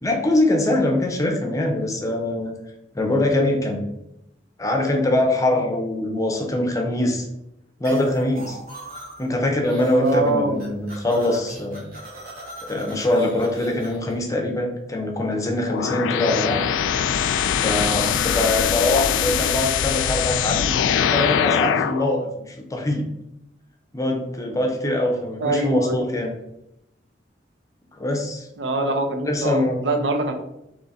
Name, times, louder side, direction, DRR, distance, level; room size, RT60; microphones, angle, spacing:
voice 1, 0.0-2.5 2.9-3.8 4.6-7.3 7.8-8.6 9.2-11.9 12.6-16.6 17.6-20.8 21.1-23.1 23.9-26.3 28.0-28.5 29.2-29.8, left 1 dB, 20° left, 2 dB, 0.6 m, -23 dB
sound 1, 7.8-9.3 9.6-10.3 10.5-14.1, right 1 dB, 50° right, 1.4 m, -38 dB
voice 2, 10.0-10.6 25.4-26.1 28.6-30.3, right 2 dB, 75° right, 5 dB, 0.7 m, -24 dB
sound 2, 15.7-22.1, left 8 dB, 85° left, 0.3 m, -22 dB
3.8 x 3.1 x 4.1 m, 0.85 s
head